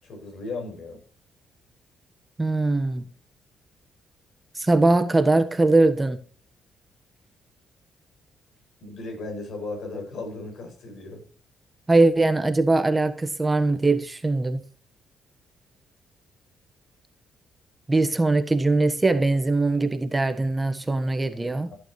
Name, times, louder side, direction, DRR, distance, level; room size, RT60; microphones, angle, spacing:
voice 1, 0.0-1.0 8.8-11.2 21.7-21.8, left 3 dB, 70° left, 6.9 m, -36 dB
voice 2, 2.4-3.0 4.5-6.2 11.9-14.6 17.9-21.7, right 2 dB, 20° right, 1.3 m, -21 dB
15.0 x 9.1 x 3.2 m
cardioid pair, 90°, 0 cm